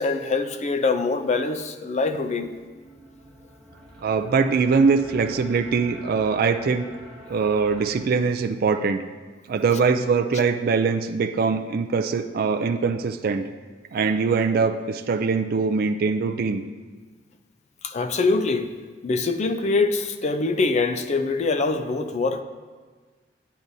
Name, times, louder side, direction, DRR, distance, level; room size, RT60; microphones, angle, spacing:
voice 1, 0.0-2.5 17.8-18.7 19.0-22.4, left 3 dB, 40° left, 9 dB, 0.5 m, -24 dB
sound 1, 2.1-8.0, equal, 5° left, 1.4 m, -46 dB
voice 2, 4.0-6.9 7.3-9.0 9.5-13.5 13.9-16.6, right 5 dB, 55° right, 7 dB, 0.4 m, -22 dB
9.5 x 8.6 x 2.7 m, 1.4 s
head